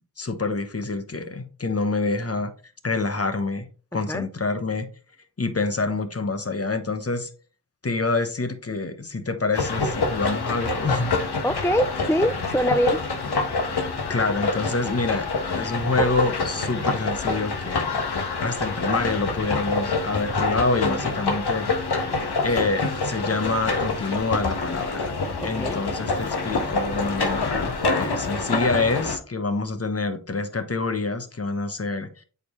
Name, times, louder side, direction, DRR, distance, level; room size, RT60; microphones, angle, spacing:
voice 1, 0.2-2.5 2.8-3.7 3.9-4.9 5.4-7.3 7.8-11.2 13.6-13.7 14.1-15.3 15.5-18.0 18.4-25.1 25.4-32.2, left 3 dB, 35° left, 1.1 m, -27 dB
voice 2, 3.9-4.3 11.4-13.0 25.4-25.8, equal, 5° left, 0.4 m, -24 dB
sound 1, 9.5-29.2, left 3 dB, 70° left, 1.3 m, -26 dB
8.0 x 4.7 x 3.2 m
cardioid pair, 40°, 40 cm